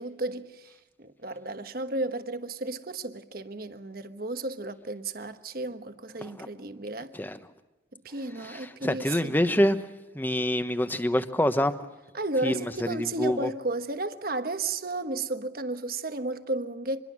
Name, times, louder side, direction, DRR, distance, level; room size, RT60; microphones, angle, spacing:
voice 1, 0.0-7.1 7.9-9.5 12.1-17.0, right 2 dB, 55° right, 1.3 m, -33 dB
voice 2, 8.5-9.8 10.1-11.8 12.4-12.6 12.9-13.5, equal, 10° left, 1.1 m, -26 dB
26.0 x 22.0 x 6.3 m
head